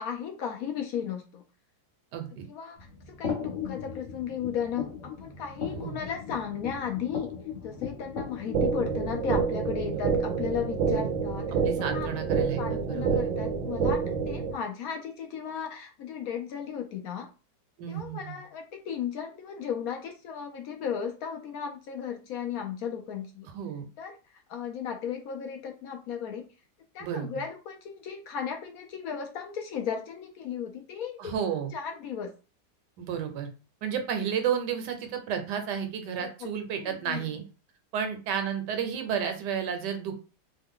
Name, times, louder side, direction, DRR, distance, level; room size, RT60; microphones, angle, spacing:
voice 1, 0.0-1.4 2.5-2.8 3.1-7.3 7.6-12.1 12.6-17.3 17.9-23.5 24.0-26.5 26.9-31.4 31.7-32.3 36.2-36.5 36.8-37.3, left 7 dB, 70° left, 3 dB, 0.9 m, -35 dB
voice 2, 2.1-2.4 5.7-6.0 9.8-10.0 10.8-11.1 11.6-13.2 17.8-18.4 23.5-23.9 27.0-27.4 31.2-31.7 33.0-33.5 33.8-37.4 37.9-40.3, right 8 dB, 80° right, 6 dB, 1.3 m, -32 dB
sound 1, 2.8-8.8, left 6 dB, 35° left, 0.9 m, -37 dB
sound 2, 8.5-14.5, right 5 dB, 65° right, 0.8 m, -28 dB
3.2 x 2.1 x 3.6 m, 0.33 s
omnidirectional pair, 1.8 m